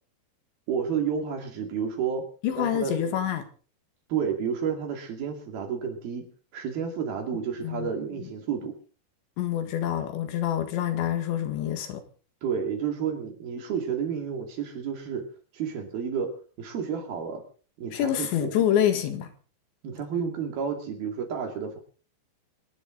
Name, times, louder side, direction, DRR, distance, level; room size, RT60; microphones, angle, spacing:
voice 1, 0.7-2.3 2.6-3.0 4.1-6.2 6.5-8.8 12.4-15.3 15.5-17.4 17.8-18.5 19.8-21.8, right 7 dB, 60° right, 4.0 m, -31 dB
voice 2, 2.4-3.4 7.6-7.9 9.4-12.0 17.9-19.3, left 10 dB, 75° left, 3.9 m, -26 dB
26.0 x 10.5 x 3.9 m
omnidirectional pair, 5.3 m